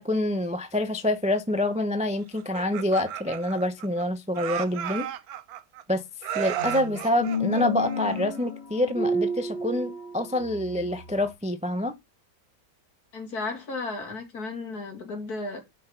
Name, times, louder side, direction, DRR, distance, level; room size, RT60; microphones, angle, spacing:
voice 1, 0.0-5.1 5.9-6.0 6.3-11.9, left 1 dB, 10° right, 0.4 m, -26 dB
Laughter, 2.3-4.0 4.3-5.8 6.2-8.5, right 11 dB, 65° right, 1.1 m, -34 dB
sound 1, 6.3-11.3, left 1 dB, 35° left, 2.0 m, -31 dB
voice 2, 13.1-15.6, left 3 dB, 60° left, 3.0 m, -34 dB
6.2 x 5.9 x 5.8 m
omnidirectional pair, 1.8 m